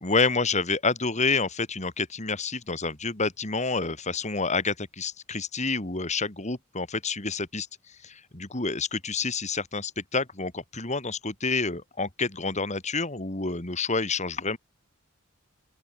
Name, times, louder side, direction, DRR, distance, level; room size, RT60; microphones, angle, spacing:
voice 1, 0.0-14.6, left 4 dB, 35° left, 2.8 m, -28 dB
open air
head